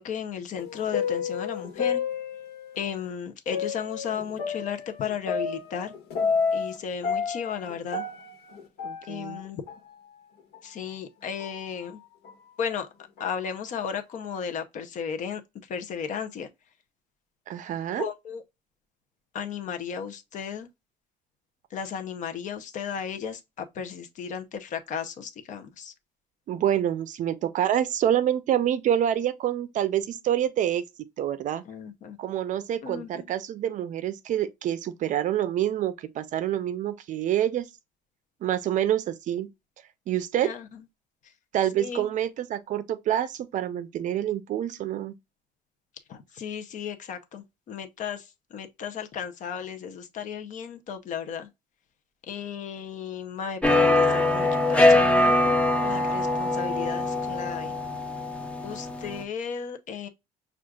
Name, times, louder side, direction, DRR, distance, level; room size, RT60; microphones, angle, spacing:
voice 1, 0.0-2.0 2.8-5.9 6.5-8.0 9.1-9.6 10.6-12.0 12.6-12.9 13.2-15.4 15.7-16.5 18.0-18.4 19.3-20.7 21.7-25.9 31.7-32.2 32.8-33.2 40.4-40.6 41.8-42.1 46.1-48.2 48.5-51.5 52.3-57.7 58.6-60.1, left 7 dB, 45° left, 0.7 m, -34 dB
sound 1, 0.6-2.8 3.5-6.8 7.0-9.4 9.7-9.8 10.5-10.6 11.4-11.6 12.2-12.3 13.2-13.5, left 5 dB, 70° left, 1.4 m, -30 dB
voice 2, 8.8-9.4 17.5-18.1 26.5-30.8 31.2-31.6 32.2-37.7 38.4-39.5 40.1-40.5 41.5-45.1, right 11 dB, 50° right, 0.5 m, -27 dB
sound 2, 53.6-59.2, left 2 dB, 5° left, 0.5 m, -22 dB
6.0 x 2.4 x 2.3 m
cardioid pair, 175°, 17 cm